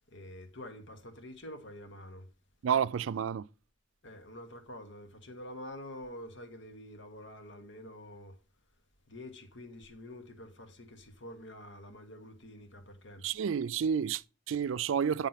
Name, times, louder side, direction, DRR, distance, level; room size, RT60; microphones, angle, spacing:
voice 1, 0.1-2.3 4.0-8.3 9.1-13.2, left 1 dB, 70° left, 1.6 m, -47 dB
voice 2, 2.6-3.5 13.2-15.3, right 7 dB, 80° right, 0.4 m, -30 dB
9.3 x 3.7 x 5.7 m
head